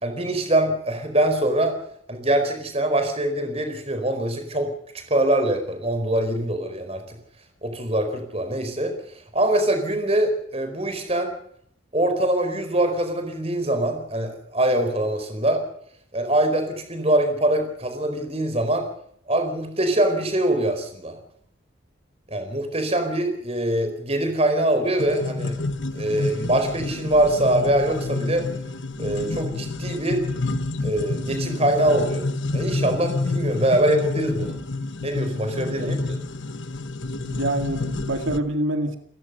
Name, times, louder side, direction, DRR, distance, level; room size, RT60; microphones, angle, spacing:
voice 1, 0.0-1.8 2.1-4.7 4.9-7.2 7.6-11.3 11.9-15.6 16.1-18.9 19.3-21.2 22.3-25.6 25.9-28.5 29.0-30.2 30.8-32.3 32.5-34.6 35.0-36.0, right 1 dB, 30° right, 7 dB, 4.6 m, -23 dB
sound 1, 25.0-38.4, left 2 dB, 70° left, 1.2 m, -29 dB
voice 2, 37.1-39.0, right 1 dB, 85° right, 6 dB, 2.2 m, -26 dB
29.5 x 15.5 x 6.8 m, 0.66 s
head